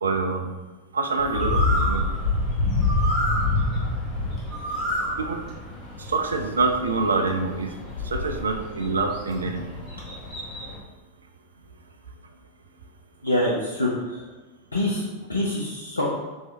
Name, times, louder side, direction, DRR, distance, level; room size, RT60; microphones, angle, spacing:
voice 1, 0.0-0.5 0.9-2.0 5.2-5.4 6.0-7.8 8.0-9.7, right 4 dB, 70° right, 5 dB, 0.3 m, -26 dB
Bird, 1.2-10.8, left 2 dB, 30° left, 1.0 m, -27 dB
voice 2, 13.2-14.2 14.7-16.1, left 1 dB, 80° left, -4 dB, 0.5 m, -25 dB
3.0 x 2.7 x 3.2 m, 1.2 s
figure-of-eight pair, 90°, 0 cm